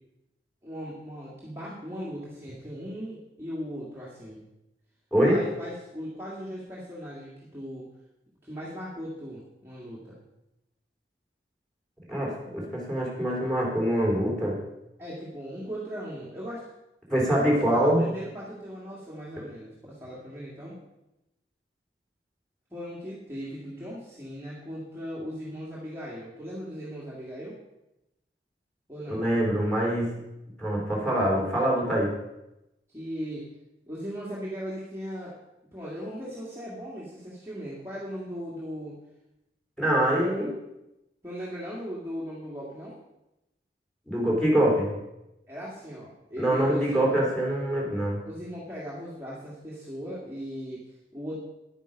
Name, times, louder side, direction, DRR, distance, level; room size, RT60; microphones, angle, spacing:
voice 1, 0.6-4.4 5.2-7.9 8.4-10.2 15.0-16.7 17.1-20.8 22.7-27.6 28.9-29.2 32.9-33.5 33.9-35.4 35.7-39.0 39.9-40.3 41.2-42.9 45.5-47.3 48.2-51.4, equal, 15° right, -7 dB, 1.9 m, -38 dB
voice 2, 12.1-14.6 17.1-18.0 29.1-30.1 30.6-32.1 39.8-40.5 44.1-44.9 46.4-48.2, right 1 dB, 5° left, -3 dB, 3.3 m, -24 dB
10.5 x 9.0 x 5.2 m, 0.92 s
head